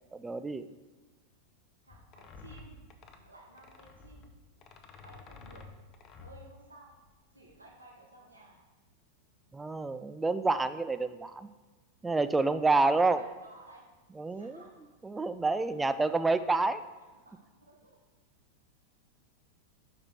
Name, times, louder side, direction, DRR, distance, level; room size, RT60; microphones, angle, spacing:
voice 1, 0.1-0.7 9.5-11.5 12.0-13.2 14.2-14.6 15.0-16.8, right 3 dB, 10° right, 12 dB, 0.3 m, -28 dB
voice 2, 1.8-2.8 3.2-4.3 5.0-5.6 6.2-7.0 7.3-8.6 9.4-9.5 13.0-13.9 14.3-14.7 16.3-16.5 17.1-18.0, right 2 dB, 80° right, -1 dB, 1.0 m, -55 dB
sound 1, 1.9-7.8, left 4 dB, 30° left, 0.6 m, -52 dB
6.2 x 4.8 x 4.0 m, 1.3 s
figure-of-eight pair, 90°, 0 cm